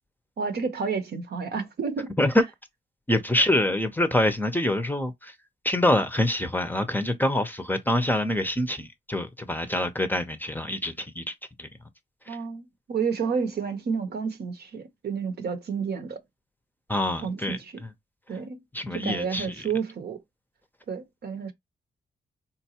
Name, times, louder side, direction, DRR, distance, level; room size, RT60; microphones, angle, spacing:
voice 1, 0.4-2.1 12.3-16.2 17.2-17.8 18.3-18.6 18.9-20.2 20.9-21.5, right 5 dB, 60° right, 0.8 m, -30 dB
voice 2, 3.1-5.3 5.6-11.7 12.3-12.4 16.9-17.9 18.7-19.7, left 1 dB, 10° left, 0.6 m, -26 dB
3.9 x 2.3 x 2.9 m
cardioid pair, 65°, 19 cm